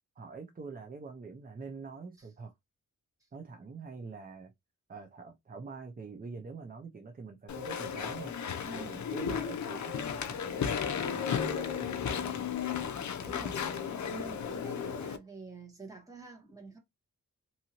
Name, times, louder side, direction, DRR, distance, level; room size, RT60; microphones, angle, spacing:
voice 1, 0.2-2.5 3.3-4.5 4.9-8.3 8.7-10.8 11.1-12.4, right 4 dB, 25° right, 0.5 m, -45 dB
Walk footsteps / Chatter / Squeak, 7.5-15.2, left 7 dB, 60° left, 0.5 m, -34 dB
voice 2, 8.6-9.0 13.2-16.8, right 3 dB, 10° right, 1.2 m, -47 dB
2.7 x 2.6 x 2.8 m
wide cardioid pair, 100°, 33 cm